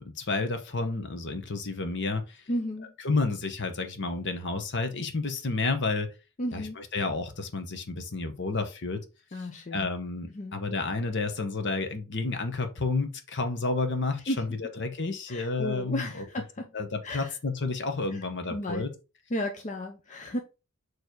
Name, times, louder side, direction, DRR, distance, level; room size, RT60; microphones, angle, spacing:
voice 1, 0.0-2.4 3.0-6.1 6.5-9.0 9.3-16.2 16.7-18.9, left 3 dB, 50° left, 1.1 m, -31 dB
voice 2, 2.5-2.9 6.4-6.8 9.3-9.9 10.3-10.5 14.3-14.4 15.3-16.7 17.0-17.4 18.5-18.8 19.3-20.4, left 1 dB, 35° left, 0.6 m, -33 dB
6.9 x 3.2 x 4.6 m
head